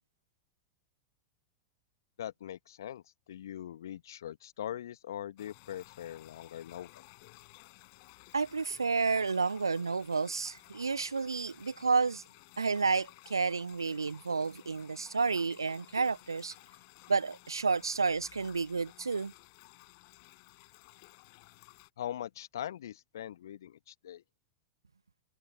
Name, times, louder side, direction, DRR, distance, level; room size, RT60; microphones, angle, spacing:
voice 1, 2.2-3.0 3.3-7.0 22.0-24.2, left 11 dB, 65° left, 1.4 m, -41 dB
sound 1, 5.4-21.9, left 29 dB, 50° left, 7.4 m, -56 dB
voice 2, 8.3-12.2 12.6-16.5 17.1-19.3, right 4 dB, 80° right, 0.4 m, -30 dB
figure-of-eight pair, 90°, 2 cm